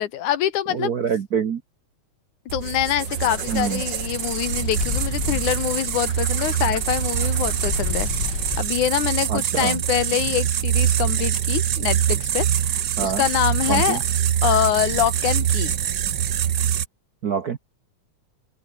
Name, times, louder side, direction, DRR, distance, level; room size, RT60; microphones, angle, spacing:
voice 1, 0.0-0.9 2.5-14.0 14.4-15.7, left 11 dB, 80° left, 2.8 m, -25 dB
voice 2, 0.7-1.6 3.5-3.8 9.3-9.8 13.0-13.2 13.7-14.0 17.2-17.6, right 7 dB, 85° right, 0.8 m, -25 dB
sound 1, 2.5-16.9, right 10 dB, 65° right, 1.1 m, -24 dB
sound 2, 3.0-8.6, left 8 dB, 45° left, 1.7 m, -32 dB
open air
omnidirectional pair, 3.5 m